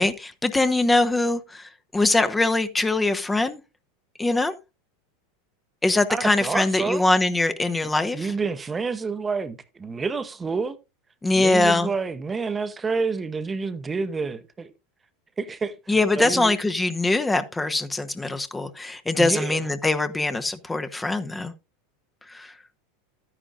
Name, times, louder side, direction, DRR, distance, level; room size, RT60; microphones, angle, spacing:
voice 1, 0.0-3.6 4.2-4.5 5.8-8.3 11.2-11.9 15.9-21.5 22.3-22.5, left 2 dB, 10° left, 0.9 m, -22 dB
voice 2, 6.1-7.0 7.8-10.8 11.3-14.7 15.4-16.6 19.2-19.7, right 4 dB, 20° right, 1.0 m, -29 dB
12.5 x 10.0 x 2.5 m
hypercardioid pair, 85°, 0 cm